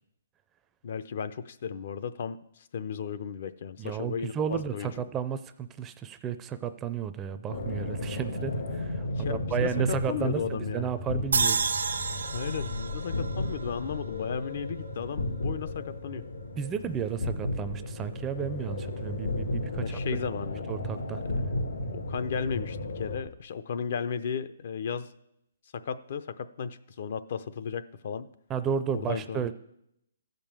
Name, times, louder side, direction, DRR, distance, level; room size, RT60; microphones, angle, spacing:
voice 1, 0.8-4.9 9.1-10.9 12.3-16.2 19.7-20.6 21.9-25.1 25.7-28.3 28.9-29.5, left 6 dB, 50° left, 12 dB, 0.6 m, -35 dB
voice 2, 3.8-10.4 10.7-11.6 16.6-20.0 20.7-21.2 28.5-29.5, right 8 dB, 15° right, 11 dB, 0.4 m, -33 dB
sound 1, 7.5-23.2, left 1 dB, 90° left, 2.4 m, -34 dB
sound 2, 11.3-14.6, right 5 dB, 85° right, 1.0 m, -31 dB
13.5 x 5.3 x 7.4 m, 0.78 s
hypercardioid pair, 160°, 0 cm